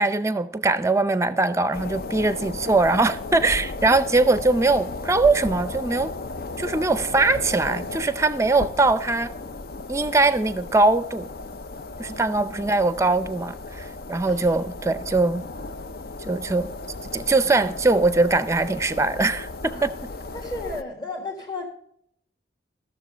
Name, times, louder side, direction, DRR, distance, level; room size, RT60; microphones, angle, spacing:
voice 1, 0.0-6.1 6.6-9.3 9.9-11.3 12.0-15.5 16.3-16.7 17.1-19.9, right 3 dB, 15° right, 0.5 m, -21 dB
sound 1, 1.7-20.8, left 3 dB, 55° left, 0.5 m, -35 dB
voice 2, 12.0-12.6 14.2-14.3 19.7-19.9 20.3-21.6, left 2 dB, 25° left, 1.6 m, -35 dB
14.5 x 6.9 x 5.0 m
head